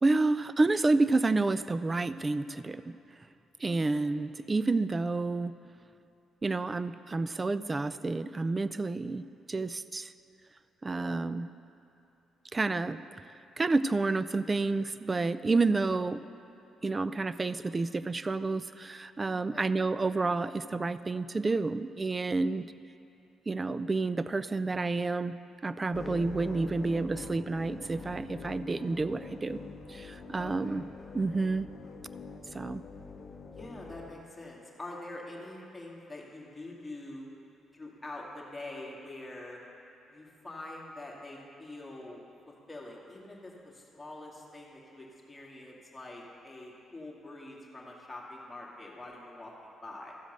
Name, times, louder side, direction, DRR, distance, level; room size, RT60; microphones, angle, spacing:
voice 1, 0.0-3.0 3.6-5.5 6.4-10.1 10.8-11.5 12.5-13.0 13.6-16.2 16.8-22.7 23.5-25.3 25.6-29.6 29.9-30.8 31.1-31.7 32.5-32.8, right 3 dB, 25° right, 14 dB, 0.3 m, -29 dB
voice 2, 3.7-4.0 19.4-19.7 30.4-30.8 33.5-37.3 37.7-39.6 40.1-50.1, left 2 dB, 15° left, -4 dB, 2.1 m, -45 dB
sound 1, 25.9-34.1, left 4 dB, 45° left, 0.8 m, -45 dB
14.0 x 5.1 x 6.6 m, 2.9 s
cardioid pair, 90°, 0 cm